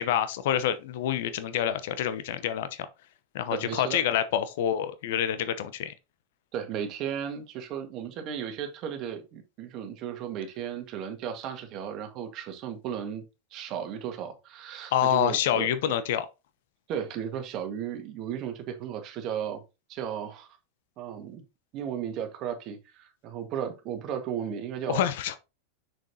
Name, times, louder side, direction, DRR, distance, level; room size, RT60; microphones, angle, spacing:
voice 1, 0.0-2.9 3.3-5.9 14.9-16.3 24.9-25.3, left 10 dB, 65° left, 0.8 m, -27 dB
voice 2, 3.5-4.0 6.5-13.2 13.5-16.0 16.9-19.6 19.9-20.5 21.0-21.4 21.7-25.0, right 8 dB, 45° right, 1.7 m, -35 dB
6.3 x 6.2 x 2.8 m
hypercardioid pair, 95°, 0 cm